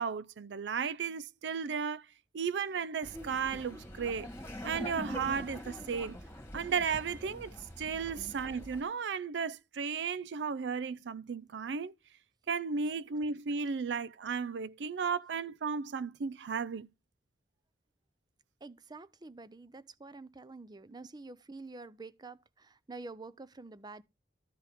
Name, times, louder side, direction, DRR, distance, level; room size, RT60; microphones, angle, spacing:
voice 1, 0.0-2.1 2.3-4.3 4.6-6.2 6.5-11.9 12.5-16.9, right 6 dB, 80° right, 0.5 m, -34 dB
Laughter, 3.0-8.8, left 1 dB, 15° left, 1.6 m, -44 dB
voice 2, 18.6-24.0, right 3 dB, 25° right, 0.5 m, -48 dB
12.5 x 4.7 x 5.0 m
head